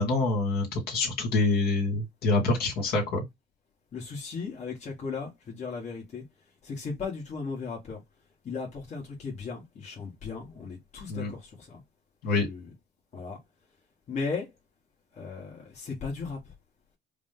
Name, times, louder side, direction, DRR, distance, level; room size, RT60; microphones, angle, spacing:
voice 1, 0.0-3.2 11.1-11.3 12.2-12.5, left 3 dB, 65° left, 2.2 m, -26 dB
voice 2, 3.9-6.2 6.6-8.0 8.4-11.8 12.3-12.6 13.1-13.4 14.1-14.5 15.2-16.4, left 4 dB, 40° left, 1.4 m, -36 dB
4.8 x 2.2 x 3.8 m
cardioid pair, 110°, 17 cm